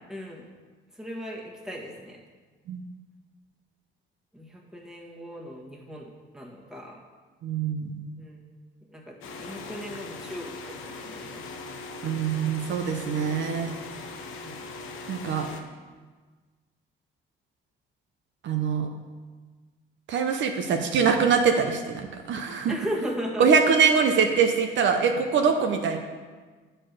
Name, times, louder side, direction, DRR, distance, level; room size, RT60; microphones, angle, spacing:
voice 1, 0.1-0.5 0.9-2.2 4.3-7.0 8.2-8.4 8.9-11.4 14.4-14.6 22.7-23.5, equal, 5° right, -2 dB, 1.5 m, -37 dB
voice 2, 7.4-8.0 12.0-13.7 15.1-15.5 18.4-18.9 20.1-22.7 23.4-26.0, right 6 dB, 70° right, 4 dB, 0.8 m, -23 dB
sound 1, 9.2-15.6, left 3 dB, 85° left, 0.8 m, -40 dB
7.7 x 4.4 x 6.6 m, 1.4 s
cardioid pair, 90°, 20 cm